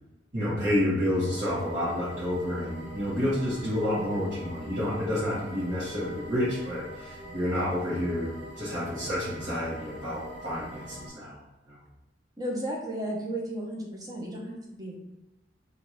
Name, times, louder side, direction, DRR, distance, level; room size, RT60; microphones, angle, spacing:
voice 1, 0.3-11.4 11.7-11.8, left 1 dB, 45° right, -12 dB, 1.4 m, -29 dB
sound 1, 1.1-11.1, equal, 75° right, 1.5 m, -43 dB
voice 2, 12.4-15.0, right 1 dB, 20° right, -2 dB, 0.8 m, -34 dB
3.6 x 2.6 x 4.4 m, 1.0 s
head